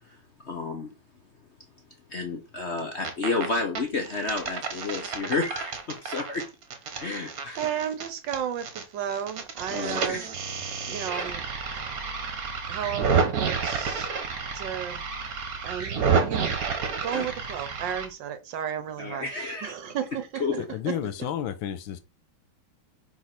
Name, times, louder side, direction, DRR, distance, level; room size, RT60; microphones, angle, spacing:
voice 1, 0.4-0.9 2.1-6.4 6.9-7.6 9.7-10.3 11.1-11.2 17.1-17.3 19.0-19.7 20.4-20.5, left 3 dB, 50° left, 0.9 m, -31 dB
sound 1, 2.8-3.5 3.8-8.8 9.1-18.1, right 5 dB, 50° right, 1.4 m, -30 dB
voice 2, 7.6-10.3 10.9-11.4 12.7-14.1 14.5-15.0 15.6-16.6 17.0-20.4 20.9-21.0, right 9 dB, 65° right, 1.3 m, -33 dB
voice 3, 20.7-22.0, left 10 dB, 75° left, 1.4 m, -31 dB
4.8 x 4.1 x 5.9 m
omnidirectional pair, 2.3 m